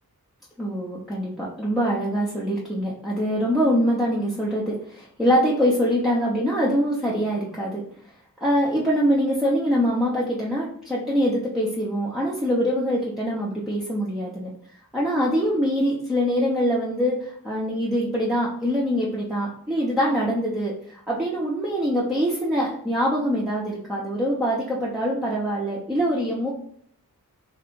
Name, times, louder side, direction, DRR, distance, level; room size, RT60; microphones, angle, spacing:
voice 1, 0.6-7.8 8.4-14.5 14.9-26.5, equal, ahead, -6 dB, 0.8 m, -24 dB
3.4 x 2.4 x 3.7 m, 0.63 s
wide cardioid pair, 50°, 37 cm